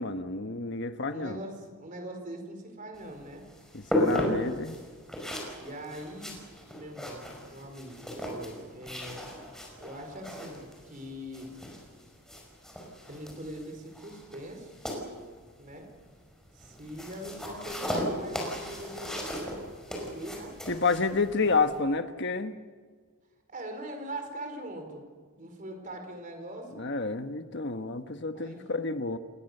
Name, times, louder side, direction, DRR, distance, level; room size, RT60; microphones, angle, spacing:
voice 1, 0.0-1.4 3.7-4.8 20.7-22.5 26.7-29.2, left 4 dB, 50° left, 8 dB, 1.3 m, -29 dB
voice 2, 1.1-3.4 5.5-6.4 6.7-9.3 9.8-11.5 13.1-14.7 15.6-15.9 16.5-19.4 19.9-20.5 23.5-25.0 25.4-26.8 28.3-28.6, right 1 dB, 35° right, 4 dB, 4.7 m, -42 dB
sound 1, 2.9-21.8, equal, ahead, 5.3 m, -37 dB
29.0 x 21.0 x 6.8 m, 1.5 s
head